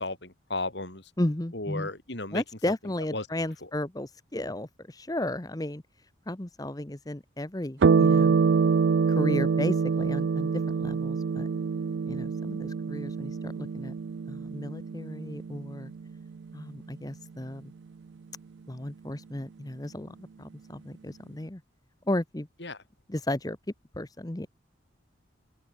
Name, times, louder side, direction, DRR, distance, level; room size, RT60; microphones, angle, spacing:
voice 1, 0.0-1.1 1.5-2.4 3.1-3.3 22.6-22.8, left 2 dB, 65° left, 3.9 m, -34 dB
voice 2, 1.2-1.9 2.3-5.8 6.3-8.4 9.1-10.5 10.8-11.5 12.1-13.9 14.3-15.9 16.5-17.7 18.7-21.6 22.1-22.5 23.1-23.6 23.9-24.5, left 1 dB, 20° left, 0.9 m, -34 dB
sound 1, 7.8-16.7, right 5 dB, 70° right, 0.4 m, -26 dB
open air
head